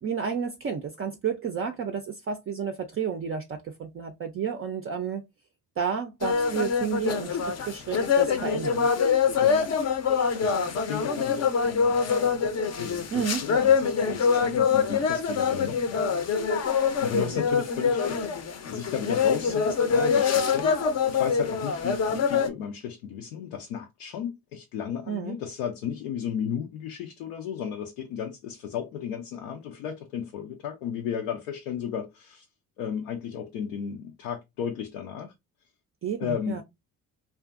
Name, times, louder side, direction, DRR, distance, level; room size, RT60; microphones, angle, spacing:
voice 1, 0.0-5.2 5.8-8.9 13.1-13.5 17.1-17.4 25.1-25.3 36.0-36.6, right 7 dB, 30° right, 0.4 m, -31 dB
sound 1, 6.2-22.5, left 6 dB, 35° left, 0.5 m, -25 dB
voice 2, 9.4-9.7 10.1-18.3 18.6-32.5 32.8-35.3 36.2-36.6, left 8 dB, 85° left, 0.5 m, -35 dB
2.4 x 2.3 x 2.4 m
hypercardioid pair, 55°, 44 cm